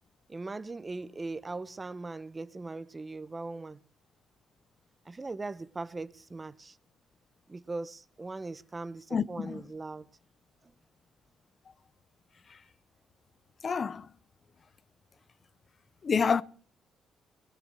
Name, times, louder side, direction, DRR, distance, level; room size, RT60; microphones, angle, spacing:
voice 1, 0.3-3.8 5.0-6.8 7.5-10.1, right 3 dB, 25° right, 1.0 m, -39 dB
voice 2, 9.1-9.6 13.6-14.1 16.0-16.4, left 6 dB, 40° left, 0.8 m, -28 dB
20.5 x 7.7 x 9.0 m
cardioid pair, 90°, 0 cm